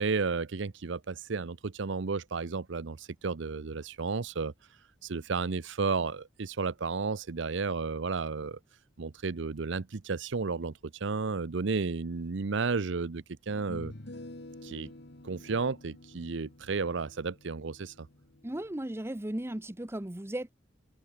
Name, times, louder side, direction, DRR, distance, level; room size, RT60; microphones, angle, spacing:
voice 1, 0.0-4.5 5.0-8.6 9.0-13.9 14.6-14.9 15.2-18.1, right 4 dB, 70° right, 0.7 m, -32 dB
sound 1, 12.4-12.5 13.5-18.7, left 1 dB, 60° left, 2.1 m, -48 dB
voice 2, 18.4-20.5, right 1 dB, 15° right, 0.8 m, -36 dB
open air
head